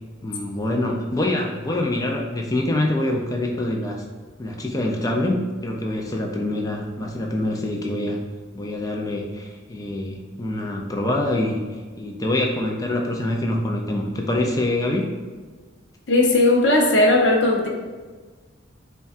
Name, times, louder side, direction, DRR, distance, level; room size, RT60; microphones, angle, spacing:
voice 1, 0.2-4.0 4.4-8.2 8.5-11.6 12.0-15.1, left 1 dB, 15° left, 1 dB, 0.3 m, -25 dB
voice 2, 16.1-17.7, left 2 dB, 60° left, 0 dB, 0.6 m, -17 dB
5.2 x 2.3 x 2.4 m, 1.4 s
head